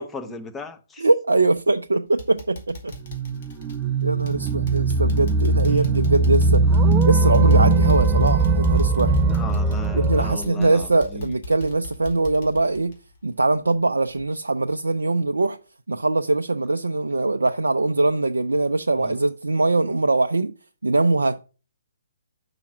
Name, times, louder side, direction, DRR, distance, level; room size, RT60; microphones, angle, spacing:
voice 1, 0.0-1.0 9.3-11.4 19.0-19.2, left 3 dB, 10° left, 0.9 m, -36 dB
voice 2, 1.0-2.9 4.0-6.6 7.0-9.2 10.0-12.9 13.2-15.6 15.9-20.5 20.8-21.4, right 2 dB, 80° right, 0.4 m, -22 dB
sound 1, 1.5-1.8 2.2-13.8 14.1-14.2 14.7-14.8, left 1 dB, 50° left, 2.3 m, -41 dB
sound 2, 2.9-10.4, right 3 dB, 20° right, 0.5 m, -20 dB
5.8 x 4.8 x 5.9 m
figure-of-eight pair, 130°, 0 cm